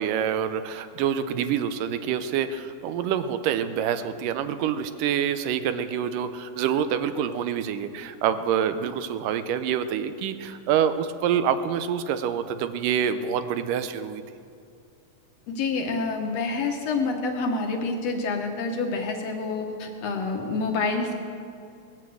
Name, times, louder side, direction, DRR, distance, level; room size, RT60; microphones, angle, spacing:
voice 1, 0.0-14.2, right 8 dB, 75° right, 10 dB, 2.1 m, -26 dB
voice 2, 15.5-21.2, left 3 dB, 55° left, 3 dB, 2.1 m, -27 dB
20.0 x 9.2 x 7.8 m, 2.5 s
omnidirectional pair, 4.1 m